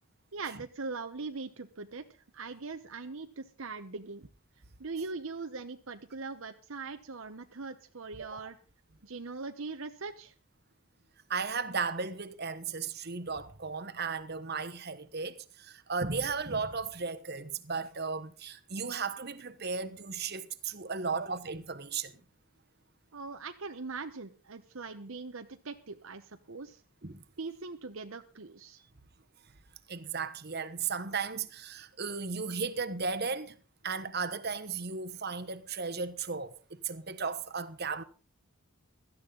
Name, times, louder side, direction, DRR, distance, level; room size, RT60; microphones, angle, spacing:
voice 1, 0.3-2.0 2.3-4.3 4.8-8.6 9.0-10.3 23.1-26.8 27.4-28.8, right 4 dB, 65° right, 0.9 m, -41 dB
voice 2, 11.3-22.1 27.0-27.2 29.9-33.6 33.8-38.0, right 5 dB, 45° right, 1.1 m, -35 dB
17.0 x 13.0 x 3.9 m
head